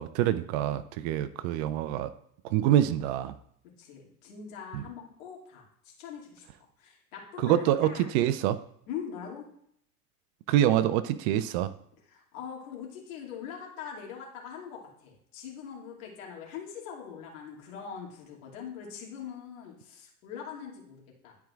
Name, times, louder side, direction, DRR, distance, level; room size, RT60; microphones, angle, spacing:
voice 1, 0.0-2.1 2.4-3.3 4.7-4.8 7.4-8.6 10.5-11.7, right 12 dB, 50° right, 14 dB, 0.5 m, -26 dB
voice 2, 3.8-8.1 8.9-9.5 12.0-21.4, left 7 dB, 65° left, -2 dB, 2.5 m, -42 dB
11.5 x 4.6 x 2.4 m, 0.70 s
hypercardioid pair, 90°, 45 cm